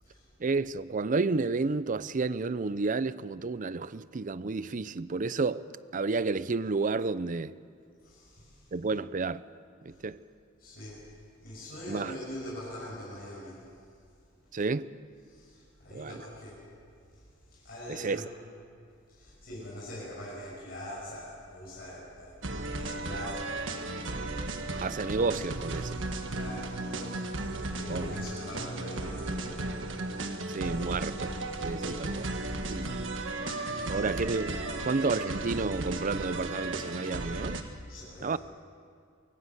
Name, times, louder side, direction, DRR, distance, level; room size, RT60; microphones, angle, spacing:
voice 1, 0.4-5.6 5.9-7.5 8.7-9.4 10.0-10.2 11.9-12.1 14.5-14.9 15.9-16.2 17.9-18.2 24.8-26.0 27.9-28.2 30.5-31.3 31.6-32.3 32.7-32.9 33.9-37.6 38.2-38.4, right 3 dB, 40° right, 0.5 m, -31 dB
voice 2, 8.0-8.7 10.6-11.0 11.4-13.6 15.3-16.6 17.5-18.3 19.1-22.4 22.7-23.5 26.3-27.3 27.7-29.7 33.4-34.2 37.9-38.4, left 1 dB, 50° left, 7.1 m, -43 dB
sound 1, 22.4-37.6, right 2 dB, 65° right, 1.6 m, -35 dB
24.0 x 18.5 x 8.0 m
head